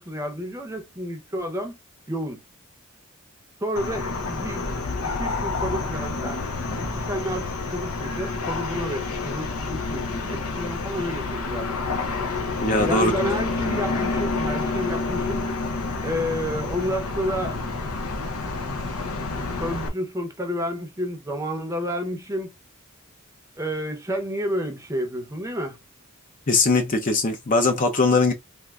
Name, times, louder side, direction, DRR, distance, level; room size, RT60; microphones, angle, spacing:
voice 1, 0.0-1.8 2.1-2.4 3.6-6.4 6.8-11.8 12.8-15.5 16.0-17.7 19.6-22.5 23.6-25.8, equal, 15° right, 0.6 m, -30 dB
sound 1, 3.8-19.9, left 3 dB, 90° left, 0.8 m, -28 dB
voice 2, 12.6-13.1 26.5-28.3, left 3 dB, 40° left, 0.5 m, -20 dB
3.5 x 2.5 x 2.3 m
head